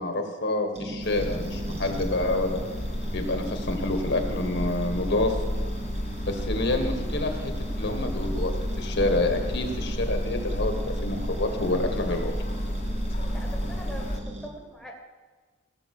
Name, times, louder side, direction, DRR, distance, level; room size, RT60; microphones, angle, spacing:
voice 1, 0.0-2.6 3.1-5.4 6.3-12.3, left 2 dB, 55° left, 5 dB, 1.6 m, -28 dB
sound 1, 0.7-14.5, right 1 dB, 30° right, 1.4 m, -39 dB
sound 2, 1.0-14.2, equal, 35° left, 1.2 m, -31 dB
voice 2, 13.3-15.0, equal, ahead, 1 dB, 1.6 m, -42 dB
17.0 x 7.8 x 6.6 m, 1.4 s
head